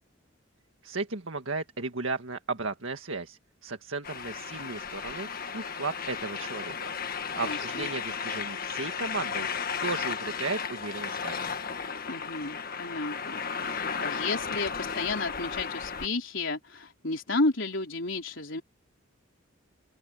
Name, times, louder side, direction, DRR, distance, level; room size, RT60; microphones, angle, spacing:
voice 1, 0.8-5.3 5.5-6.8 7.1-9.5 9.8-11.6, right 3 dB, 75° right, 1.8 m, -35 dB
sound 1, 4.0-16.1, left 6 dB, 45° left, 1.6 m, -34 dB
voice 2, 7.3-7.9 12.1-18.6, left 2 dB, 65° left, 4.1 m, -32 dB
open air
head